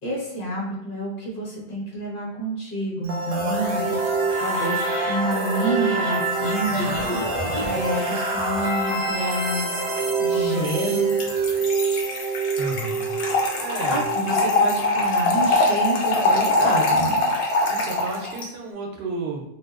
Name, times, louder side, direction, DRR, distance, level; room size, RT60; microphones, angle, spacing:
voice 1, 0.0-4.0 4.4-7.0 7.6-9.8 10.2-11.1 13.8-17.2, right 1 dB, 55° left, -5 dB, 1.1 m, -28 dB
sound 1, 3.0-14.9, right 3 dB, 55° right, 0.4 m, -26 dB
sound 2, 4.3-7.2 7.5-8.2 8.5-9.7, left 1 dB, 35° left, 0.4 m, -39 dB
Trickle dribble / Fill (with liquid), 11.1-18.5, left 2 dB, 75° left, 0.8 m, -22 dB
voice 2, 12.6-13.1 13.6-14.0 17.7-19.4, right 3 dB, 85° right, 0 dB, 0.8 m, -32 dB
2.6 x 2.2 x 2.3 m, 0.83 s
omnidirectional pair, 1.0 m